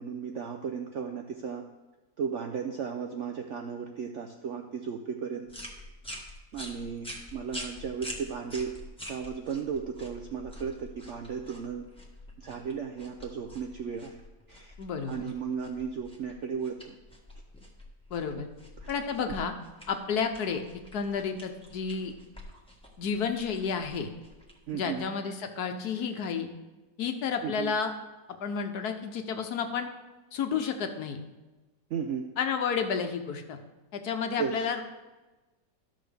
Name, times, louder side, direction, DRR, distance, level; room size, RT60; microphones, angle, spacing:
voice 1, 0.0-1.6 2.2-5.5 6.5-8.7 9.0-11.9 12.4-14.2 14.5-14.7 15.1-17.0 18.8-18.9 24.7-25.0 27.4-27.7 31.9-32.3 34.4-34.6, right 6 dB, 75° right, 4 dB, 0.6 m, -35 dB
sound 1, 5.5-25.0, left 1 dB, 5° left, 1.1 m, -46 dB
voice 2, 14.8-15.3 18.1-18.5 18.9-19.5 19.9-20.6 20.9-22.1 23.0-24.1 24.7-26.5 27.0-27.9 28.4-29.9 30.3-31.2 32.4-33.6 33.9-34.8, left 6 dB, 65° left, 6 dB, 1.3 m, -31 dB
13.5 x 6.2 x 3.4 m, 1.2 s
omnidirectional pair, 1.9 m